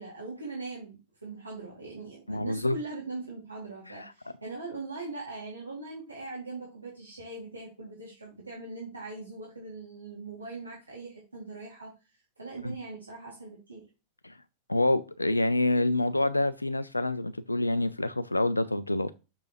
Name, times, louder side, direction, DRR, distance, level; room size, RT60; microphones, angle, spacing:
voice 1, 0.0-13.8, right 3 dB, 80° right, 2.1 m, -41 dB
voice 2, 2.3-2.7 12.6-12.7 14.2-14.3 14.7-19.1, left 2 dB, 85° left, 0.3 m, -27 dB
6.7 x 6.4 x 2.9 m
figure-of-eight pair, 90°, 0 cm